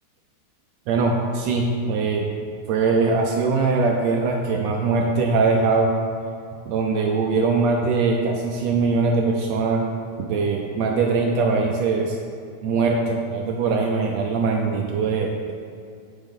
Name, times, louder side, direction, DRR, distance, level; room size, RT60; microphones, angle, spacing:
voice 1, 0.9-2.3 2.7-5.9 6.6-9.8 10.2-12.2 12.6-15.5, right 4 dB, 80° right, 1 dB, 1.6 m, -21 dB
8.8 x 5.3 x 3.7 m, 2.3 s
omnidirectional pair, 3.4 m